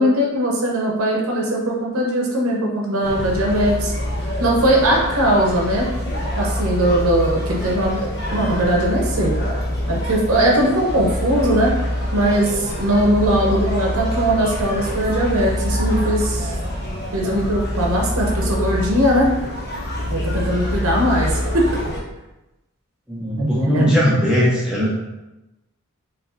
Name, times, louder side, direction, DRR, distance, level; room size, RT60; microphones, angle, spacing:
voice 1, 0.0-3.9 4.4-5.9 6.4-9.4 9.9-11.7 12.1-16.5 17.1-19.3 20.1-21.8 23.4-23.9, right 1 dB, 75° right, -2 dB, 0.9 m, -20 dB
sound 1, 3.0-22.0, equal, 50° left, 1.1 m, -25 dB
voice 2, 23.1-25.1, equal, 5° right, -7 dB, 0.7 m, -19 dB
6.1 x 3.1 x 2.6 m, 0.99 s
head